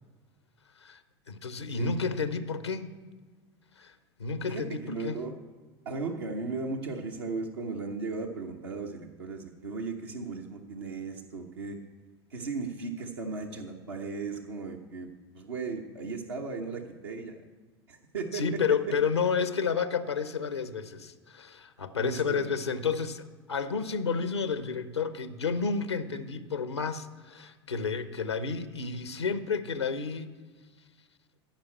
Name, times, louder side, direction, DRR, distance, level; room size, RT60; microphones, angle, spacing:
voice 1, 1.3-2.9 3.8-3.9 4.2-5.2 18.3-30.3, left 5 dB, 90° left, 12 dB, 0.8 m, -31 dB
voice 2, 4.5-5.3 5.8-11.8 12.3-15.1 15.3-17.4 17.9-18.4 22.0-22.5, right 4 dB, 75° right, -1 dB, 1.1 m, -36 dB
15.0 x 5.1 x 8.3 m, 1.4 s
figure-of-eight pair, 80°, 14 cm